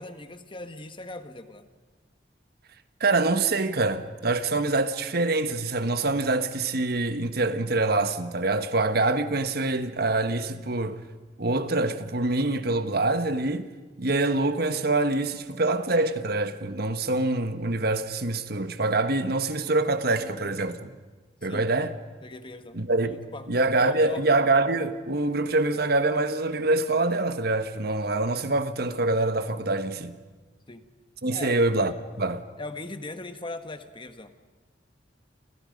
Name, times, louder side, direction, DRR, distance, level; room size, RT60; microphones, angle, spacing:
voice 1, 0.0-1.7 21.5-21.7 22.2-22.8 23.0-23.5 23.8-24.2 30.7-30.9 31.3-31.9 32.6-34.3, left 2 dB, 30° left, 1.4 m, -40 dB
voice 2, 3.0-11.0 11.4-13.7 14.0-20.9 21.4-22.0 22.7-23.2 23.5-30.2 31.2-32.4, right 2 dB, 60° right, 1.4 m, -25 dB
29.0 x 29.0 x 5.3 m
head